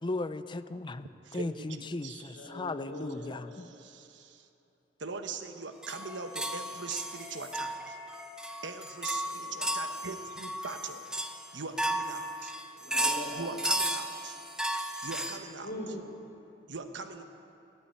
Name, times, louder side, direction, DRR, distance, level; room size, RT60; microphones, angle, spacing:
voice 1, 0.0-3.7, left 2 dB, 25° left, 13 dB, 0.5 m, -37 dB
voice 2, 1.2-2.5 3.6-4.5 5.0-8.0 8.6-9.2 9.5-11.1 11.5-12.5 13.3-14.4 15.0-15.7 16.7-17.2, right 4 dB, 75° right, 7 dB, 1.1 m, -41 dB
voice 3, 2.3-3.4 9.4-9.6 12.7-13.5 15.6-16.2, left 1 dB, 70° left, -1 dB, 3.8 m, -41 dB
sound 1, 5.8-15.4, right 1 dB, 5° right, 0.7 m, -34 dB
14.0 x 11.5 x 8.9 m, 2.7 s
head